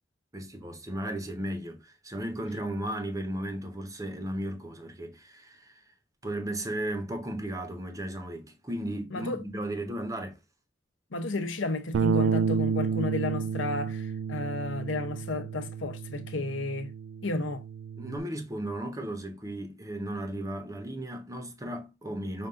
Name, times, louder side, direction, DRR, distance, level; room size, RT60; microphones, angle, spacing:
voice 1, 0.3-5.8 6.2-10.4 18.0-22.5, right 1 dB, 20° right, 1.0 m, -35 dB
voice 2, 11.1-16.9 17.2-17.6, left 2 dB, 80° left, 0.8 m, -32 dB
Bass guitar, 11.9-18.2, right 6 dB, 80° right, 0.3 m, -31 dB
5.4 x 2.6 x 3.6 m
head